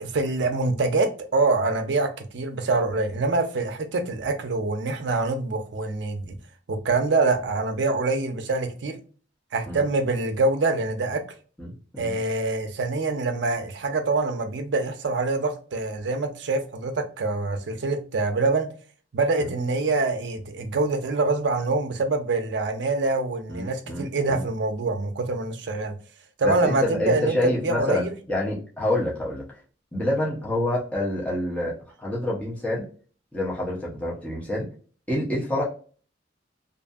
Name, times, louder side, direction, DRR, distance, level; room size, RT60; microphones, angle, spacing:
voice 1, 0.0-6.3 6.7-9.0 9.5-11.2 12.0-18.7 19.1-25.9 26.4-28.1, right 3 dB, 65° right, 0.5 m, -25 dB
voice 2, 11.6-12.2 19.4-19.5 23.5-24.4 26.4-29.4 29.9-32.9 33.3-34.7 35.1-35.6, left 1 dB, 5° left, 0.7 m, -27 dB
2.6 x 2.6 x 2.3 m
head